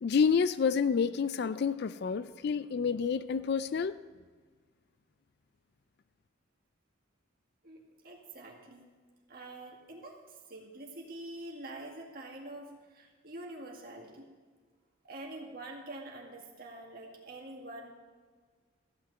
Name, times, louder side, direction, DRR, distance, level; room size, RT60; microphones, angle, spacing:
voice 1, 0.0-3.9, left 6 dB, 50° left, 15 dB, 0.3 m, -29 dB
voice 2, 7.6-8.9 9.3-14.3 15.0-17.9, right 1 dB, 45° right, 0 dB, 2.1 m, -46 dB
14.5 x 6.1 x 7.7 m, 1.5 s
head